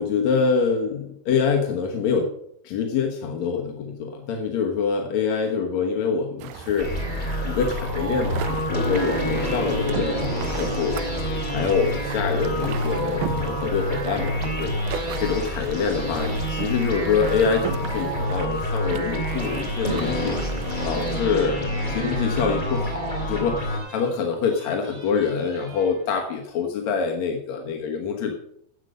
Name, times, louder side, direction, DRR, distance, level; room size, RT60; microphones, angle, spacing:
voice 1, 0.0-2.3 2.6-6.9 7.4-11.0 11.5-14.7 15.2-28.3, left 6 dB, 65° left, 2 dB, 1.8 m, -25 dB
sound 1, 6.4-21.2, right 8 dB, 80° right, 1.9 m, -36 dB
sound 2, 6.8-23.8, equal, 15° left, 2.4 m, -27 dB
sound 3, 20.1-20.3 20.6-26.5 26.8-26.9 27.0-27.2, right 4 dB, 35° right, 4.5 m, -48 dB
12.0 x 8.1 x 6.4 m, 0.71 s
omnidirectional pair, 4.6 m